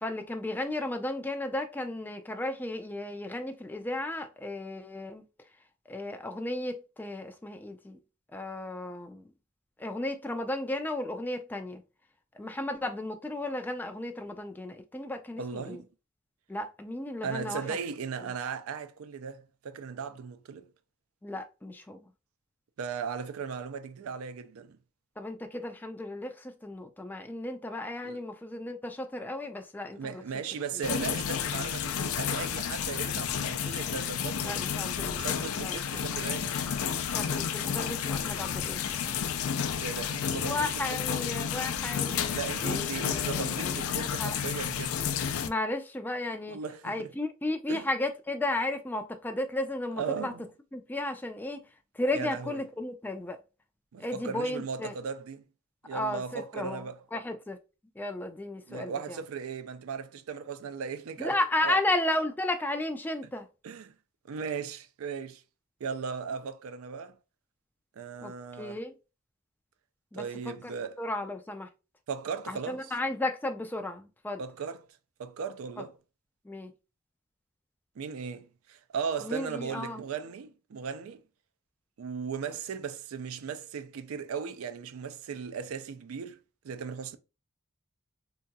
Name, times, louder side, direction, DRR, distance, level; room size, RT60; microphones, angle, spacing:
voice 1, 0.0-5.2 5.9-8.0 8.3-9.2 9.8-11.8 12.4-15.8 16.5-17.6 21.2-22.0 25.2-26.3 26.6-30.2 34.4-35.2 35.6-35.8 37.1-38.8 40.5-42.3 42.6-44.4 45.4-46.6 46.8-50.3 50.7-51.6 52.0-53.4 54.0-54.9 55.9-56.8 57.1-57.6 58.0-58.9 61.2-63.5 68.2-68.3 68.6-68.9 70.1-70.5 71.0-71.7 72.5-74.4 76.5-76.7 79.2-80.0, left 2 dB, 10° left, 0.3 m, -34 dB
voice 2, 15.4-15.9 17.2-20.7 22.8-24.8 28.0-28.2 29.9-34.8 35.2-36.7 39.8-41.3 42.3-45.0 46.5-47.1 47.7-47.9 50.0-50.5 52.1-52.6 53.9-55.4 55.8-57.0 58.7-61.4 61.6-61.8 63.2-63.3 63.6-63.9 64.2-65.4 65.8-67.2 68.0-68.8 70.1-71.0 72.1-73.0 74.4-74.9 75.2-76.0 78.0-81.2 82.0-86.4 86.6-87.2, right 6 dB, 85° right, 0.4 m, -37 dB
sound 1, 30.8-45.5, left 8 dB, 85° left, 0.4 m, -31 dB
3.6 x 2.8 x 2.2 m
head